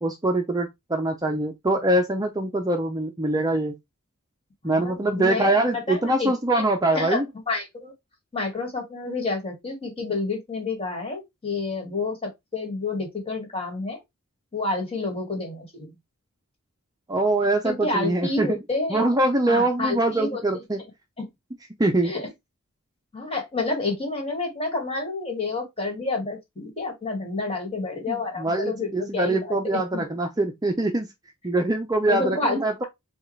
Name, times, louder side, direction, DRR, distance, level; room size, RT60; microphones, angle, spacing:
voice 1, 0.0-3.8 4.6-7.3 17.1-18.6 18.9-20.8 21.8-22.1 28.1-31.1 31.4-32.8, right 2 dB, 15° right, 0.5 m, -23 dB
voice 2, 4.6-6.6 6.9-7.2 7.5-7.9 8.3-14.0 14.5-15.9 17.6-19.0 19.5-20.4 21.2-21.3 22.0-22.3 23.1-30.0 32.1-32.6, left 3 dB, 25° left, 1.9 m, -29 dB
7.0 x 2.4 x 3.2 m
head